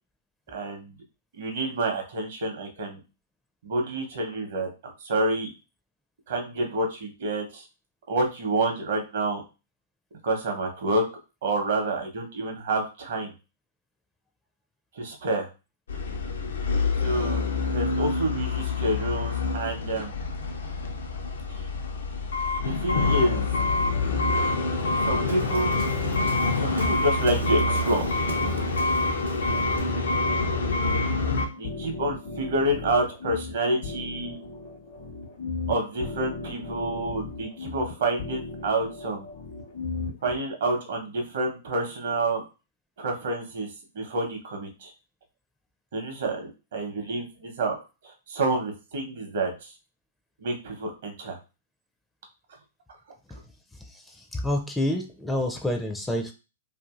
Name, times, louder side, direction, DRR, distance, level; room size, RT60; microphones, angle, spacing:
voice 1, 0.5-0.9 1.4-3.0 3.6-5.5 6.3-7.6 8.1-9.4 10.2-11.0 11.4-13.3 15.0-15.5 17.0-20.1 22.6-23.5 24.1-24.4 25.0-25.8 26.5-28.2 31.0-31.1 31.6-34.4 35.7-39.3 40.2-42.4 43.0-43.7 43.9-44.9 45.9-47.8 48.3-49.7 50.4-51.4, right 2 dB, 65° right, 3 dB, 0.8 m, -28 dB
sound 1, 15.9-31.5, left 3 dB, 75° left, 0.5 m, -26 dB
sound 2, 22.9-40.4, left 3 dB, 60° left, 0.9 m, -36 dB
Waves surf, 24.8-30.0, right 3 dB, 90° right, 0.5 m, -40 dB
voice 2, 54.3-56.3, left 1 dB, 5° left, 3 dB, 0.4 m, -27 dB
2.6 x 2.6 x 2.4 m, 0.30 s
hypercardioid pair, 115°, 0 cm